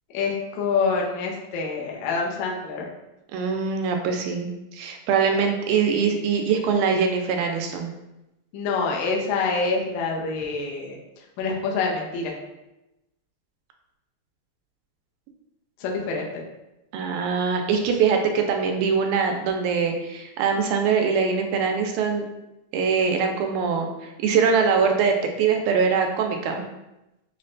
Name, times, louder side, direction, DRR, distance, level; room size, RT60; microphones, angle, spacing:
voice 1, 0.1-2.9 8.5-11.0 11.4-12.4 15.8-16.4, left 4 dB, 80° left, -1 dB, 2.0 m, -26 dB
voice 2, 3.3-7.9 16.9-22.3 22.7-26.7, right 5 dB, 90° right, 4 dB, 2.0 m, -23 dB
5.9 x 2.1 x 2.5 m, 0.95 s
omnidirectional pair, 3.3 m